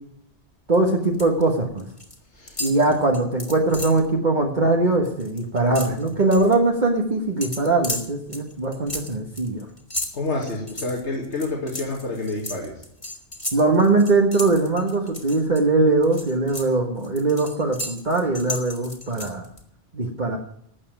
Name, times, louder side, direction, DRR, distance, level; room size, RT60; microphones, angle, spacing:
sound 1, 0.7-1.4 1.7-2.2 2.5-4.1 4.5-4.6 4.9-6.6 7.4-15.6 16.0-19.6, left 1 dB, 30° left, 2.1 m, -34 dB
voice 1, 0.7-1.8 2.6-9.7 13.5-19.4 19.9-20.4, right 2 dB, 40° right, 0 dB, 1.6 m, -21 dB
voice 2, 2.3-2.6 10.1-12.8, left 2 dB, 75° left, -1 dB, 2.7 m, -28 dB
12.5 x 8.5 x 9.2 m, 0.72 s
omnidirectional pair, 1.2 m